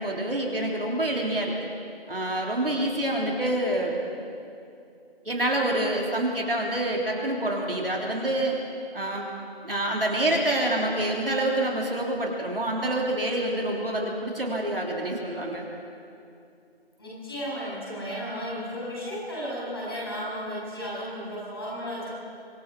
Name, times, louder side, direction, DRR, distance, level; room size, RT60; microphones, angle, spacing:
voice 1, 0.0-1.5 2.1-4.0 5.3-8.5 8.9-9.3 9.6-15.7, right 1 dB, 60° right, -1 dB, 3.6 m, -27 dB
voice 2, 17.0-22.1, equal, 20° left, -7 dB, 7.2 m, -34 dB
25.5 x 20.0 x 5.5 m, 2.5 s
figure-of-eight pair, 175°, 32 cm